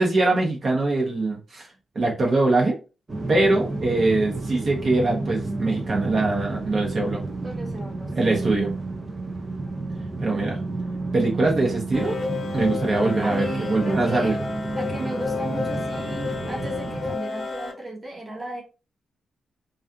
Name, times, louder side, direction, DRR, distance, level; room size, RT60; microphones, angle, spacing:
voice 1, 0.0-1.7 1.9-2.8 3.3-7.2 8.1-8.7 10.2-10.6 11.1-12.2 12.5-14.4, right 2 dB, 45° right, -1 dB, 0.8 m, -22 dB
sound 1, 3.1-17.2, right 2 dB, 30° right, 0.3 m, -31 dB
voice 2, 7.4-8.5 13.2-14.4 14.8-18.6, right 2 dB, 10° right, -2 dB, 0.8 m, -36 dB
sound 2, 11.9-17.7, left 4 dB, 60° left, 0.7 m, -31 dB
2.4 x 2.3 x 2.5 m, 0.32 s
wide cardioid pair, 140°, 0 cm